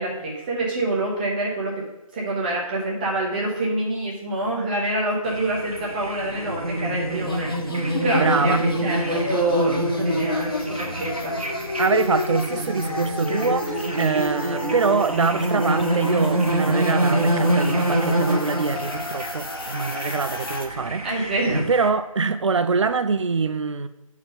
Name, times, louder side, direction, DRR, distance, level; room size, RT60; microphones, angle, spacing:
voice 1, 0.0-1.8 2.1-7.5 7.8-11.3 21.0-21.6, right 1 dB, 15° right, 1.1 m, -26 dB
sound 1, 5.2-21.9, right 1 dB, 80° right, 1.4 m, -26 dB
sound 2, 7.1-20.7, left 3 dB, 40° left, 0.8 m, -31 dB
voice 2, 8.2-8.7 11.8-23.9, right 4 dB, 55° right, 0.4 m, -24 dB
9.1 x 4.5 x 3.7 m
figure-of-eight pair, 155°, 18 cm